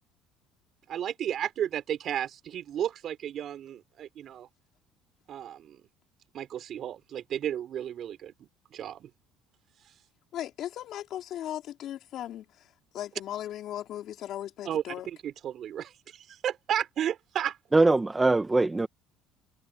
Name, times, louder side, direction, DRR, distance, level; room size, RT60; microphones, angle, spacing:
voice 1, 0.9-4.5 5.3-5.8 6.3-9.1 14.7-17.6, right 10 dB, 50° right, 3.8 m, -33 dB
voice 2, 10.3-15.1, left 12 dB, 60° left, 3.8 m, -37 dB
voice 3, 17.7-18.9, right 2 dB, 15° right, 1.4 m, -22 dB
supercardioid pair, 100°, 0 cm